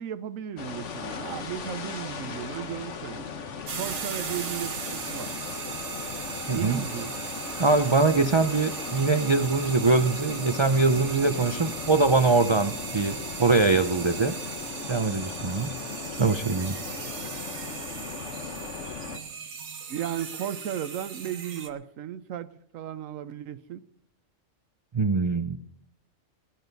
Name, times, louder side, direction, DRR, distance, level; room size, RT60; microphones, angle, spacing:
voice 1, 0.0-3.2 3.8-5.3 6.5-7.1 8.4-8.5 19.9-22.5 22.7-23.8, right 10 dB, 80° right, 1.1 m, -35 dB
sound 1, 0.6-19.2, left 5 dB, 65° left, 1.4 m, -38 dB
sound 2, 3.7-21.7, right 6 dB, 60° right, 1.4 m, -38 dB
voice 2, 7.6-14.3 14.9-15.7 16.2-16.8 24.9-25.6, right 3 dB, 40° right, 0.4 m, -23 dB
20.0 x 11.0 x 4.0 m
omnidirectional pair, 1.4 m